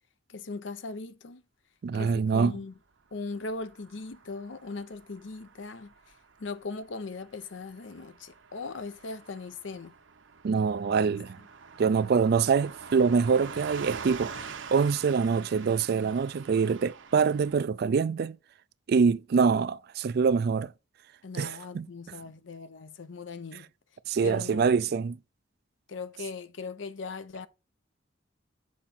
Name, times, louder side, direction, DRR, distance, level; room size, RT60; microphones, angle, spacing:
voice 1, 0.3-1.4 1.9-2.8 3.1-5.9 6.4-9.9 21.2-23.7 24.2-24.7 25.9-27.5, left 3 dB, 75° left, 0.7 m, -39 dB
voice 2, 1.8-2.5 10.4-11.4 11.8-14.3 14.7-18.4 18.9-20.7 21.4-21.9 24.1-25.2, right 5 dB, 55° right, 0.4 m, -25 dB
Car passing by / Truck, 3.3-17.6, right 5 dB, 80° right, 0.9 m, -45 dB
7.3 x 5.0 x 4.3 m
head